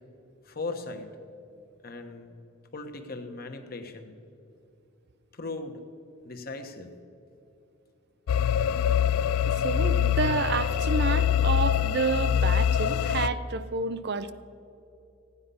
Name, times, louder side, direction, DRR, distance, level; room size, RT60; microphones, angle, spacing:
voice 1, 0.4-1.1 1.8-2.4 2.7-4.2 5.3-5.8 6.2-6.9, left 3 dB, 45° left, 5 dB, 1.1 m, -38 dB
sound 1, 8.3-13.3, left 8 dB, 85° left, 0.3 m, -24 dB
voice 2, 9.5-14.3, right 4 dB, 50° right, 12 dB, 0.5 m, -29 dB
15.5 x 9.8 x 5.5 m, 2.7 s
head